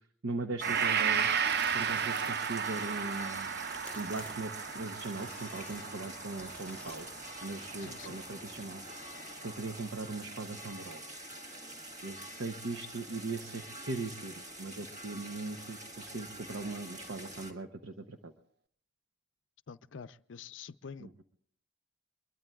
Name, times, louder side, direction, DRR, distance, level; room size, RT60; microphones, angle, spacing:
voice 1, 0.2-1.4 1.7-3.5 3.9-7.1 7.4-8.8 9.4-11.0 12.0-18.3 21.0-21.1, right 3 dB, 70° right, 0.9 m, -39 dB
sound 1, 0.6-17.5, right 1 dB, 35° right, 1.7 m, -46 dB
Gong, 0.6-8.6, right 7 dB, 50° right, 0.6 m, -34 dB
sound 2, 1.3-8.3, left 3 dB, 5° left, 0.6 m, -54 dB
voice 2, 7.8-8.2 19.7-21.1, left 6 dB, 65° left, 0.5 m, -47 dB
23.5 x 21.5 x 2.4 m
head